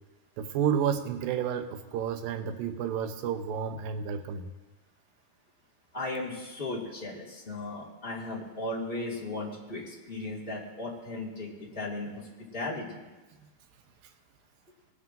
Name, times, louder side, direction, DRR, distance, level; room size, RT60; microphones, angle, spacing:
voice 1, 0.4-4.5, right 8 dB, 85° right, 7 dB, 2.6 m, -31 dB
voice 2, 5.9-12.3 12.5-13.0, left 2 dB, 20° left, -4 dB, 1.6 m, -36 dB
21.0 x 11.5 x 2.6 m, 1.2 s
omnidirectional pair, 4.0 m